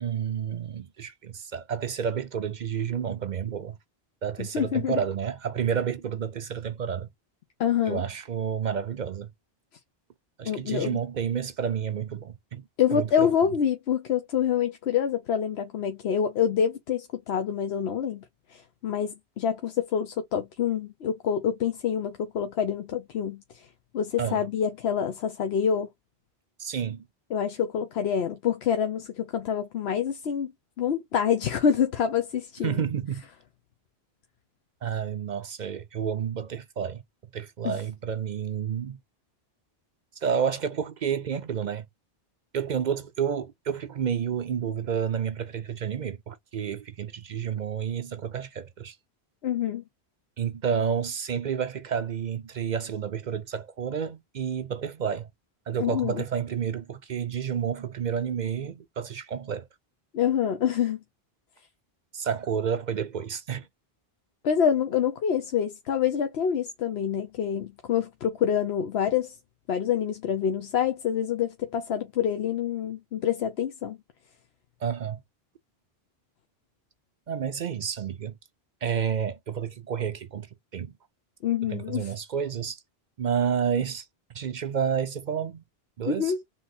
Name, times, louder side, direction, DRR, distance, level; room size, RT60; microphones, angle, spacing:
voice 1, 0.0-3.8 4.2-7.1 7.9-9.3 10.4-12.7 12.9-13.3 24.2-24.4 26.6-27.0 32.6-33.2 34.8-37.0 37.3-39.0 40.2-41.8 42.5-48.9 50.4-55.3 55.7-59.7 62.1-63.7 74.8-75.2 77.3-78.3 78.8-80.5 80.7-80.9 81.7-82.8 83.2-84.0 84.3-85.6 86.0-86.3, right 7 dB, 55° right, 0.6 m, -30 dB
voice 2, 4.4-5.0 7.6-8.0 10.4-11.0 12.8-18.2 18.5-23.7 23.9-25.9 27.3-30.5 30.8-32.8 37.6-37.8 49.4-49.8 55.8-56.2 60.1-61.0 64.4-69.4 69.7-74.0 81.4-82.1 86.1-86.4, left 8 dB, 85° left, 1.0 m, -26 dB
3.7 x 2.8 x 4.1 m
omnidirectional pair, 1.0 m